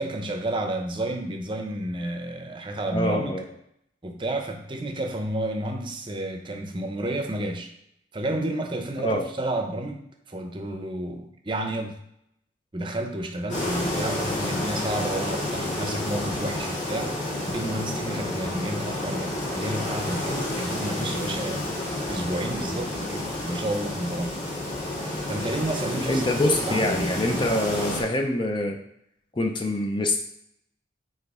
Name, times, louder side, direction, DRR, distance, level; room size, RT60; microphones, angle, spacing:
voice 1, 0.0-3.4 4.0-7.7 8.1-12.0 12.7-17.1 17.5-21.7 22.1-24.4 25.3-27.8, right 1 dB, 30° right, 4 dB, 0.7 m, -31 dB
voice 2, 2.9-3.4 9.0-9.2 26.1-28.8 29.3-30.2, left 1 dB, 25° left, 4 dB, 0.5 m, -25 dB
sound 1, 13.5-28.0, left 1 dB, 45° left, 1.9 m, -30 dB
5.1 x 3.8 x 4.9 m, 0.74 s
head